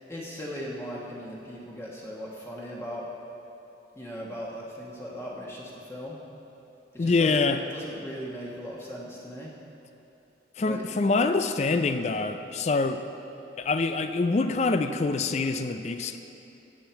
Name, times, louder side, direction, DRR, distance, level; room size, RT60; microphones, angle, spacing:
voice 1, 0.1-3.1 3.9-6.2 6.9-9.5 10.6-10.9, equal, 15° left, -4 dB, 1.2 m, -38 dB
voice 2, 7.0-7.6 10.6-13.0 13.6-16.2, left 3 dB, 35° left, 8 dB, 0.4 m, -25 dB
16.5 x 7.4 x 4.5 m, 2.9 s
head